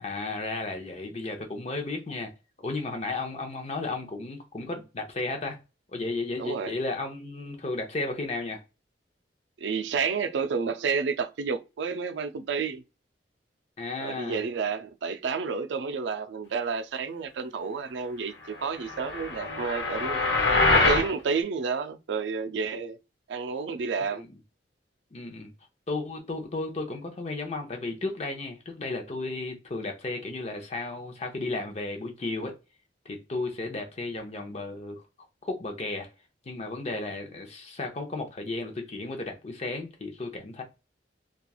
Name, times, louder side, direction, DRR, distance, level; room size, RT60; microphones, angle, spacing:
voice 1, 0.0-2.3 2.6-5.6 5.9-8.6 13.8-14.4 25.1-25.5 25.9-32.6 33.0-35.0 35.4-36.1 36.5-40.6, left 2 dB, 35° left, 0.6 m, -34 dB
voice 2, 6.4-6.8 9.6-12.8 14.0-20.2 20.7-23.0 23.3-24.2 36.9-37.0, right 5 dB, 80° right, 0.4 m, -30 dB
sound 1, 18.9-21.1, left 2 dB, 75° left, 0.7 m, -24 dB
3.0 x 2.3 x 2.3 m
head